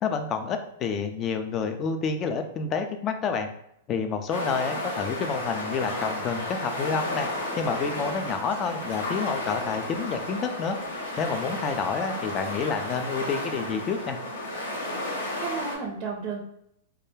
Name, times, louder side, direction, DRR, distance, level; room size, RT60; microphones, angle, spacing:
voice 1, 0.0-3.5 3.9-7.3 7.6-10.8 11.2-14.2, left 5 dB, 30° left, 7 dB, 0.3 m, -29 dB
sound 1, 4.3-15.8, left 1 dB, 85° left, 0.8 m, -33 dB
voice 2, 15.0-16.4, right 5 dB, 40° right, 1 dB, 0.4 m, -33 dB
2.3 x 2.1 x 3.1 m, 0.76 s
hypercardioid pair, 120°, 0 cm